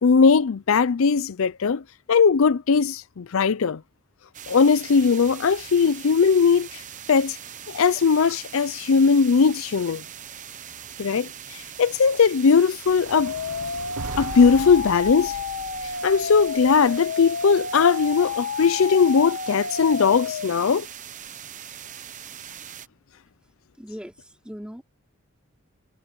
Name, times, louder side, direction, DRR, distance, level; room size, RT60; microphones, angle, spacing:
voice 1, 0.0-1.8 2.1-3.8 4.5-6.8 7.1-7.4 7.7-10.0 11.0-13.3 14.2-15.4 15.8-20.9, left 5 dB, 65° left, 0.5 m, -19 dB
sound 1, 4.3-22.9, right 9 dB, 35° right, 0.9 m, -41 dB
sound 2, 12.9-17.1, right 4 dB, 90° right, 0.9 m, -39 dB
sound 3, 13.1-20.5, left 6 dB, 85° left, 1.3 m, -31 dB
voice 2, 23.8-24.8, equal, 5° right, 4.2 m, -39 dB
head